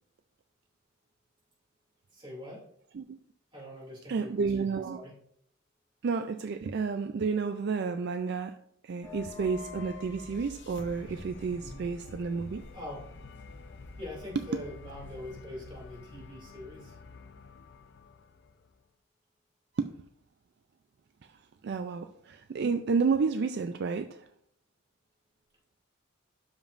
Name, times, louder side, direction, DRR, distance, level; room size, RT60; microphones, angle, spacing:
voice 1, 2.1-2.6 3.5-5.1 11.6-11.9 12.7-13.0 14.0-17.0, left 1 dB, 25° right, -3 dB, 2.5 m, -43 dB
voice 2, 4.1-5.0 6.0-8.6 8.8-12.6 19.8-20.1 21.2-24.3, right 5 dB, 55° right, 8 dB, 0.3 m, -31 dB
sound 1, 9.0-16.4, left 4 dB, 10° left, 2.4 m, -49 dB
sound 2, 9.8-18.9, left 4 dB, 55° left, 0.4 m, -50 dB
12.0 x 5.1 x 2.5 m, 0.69 s
head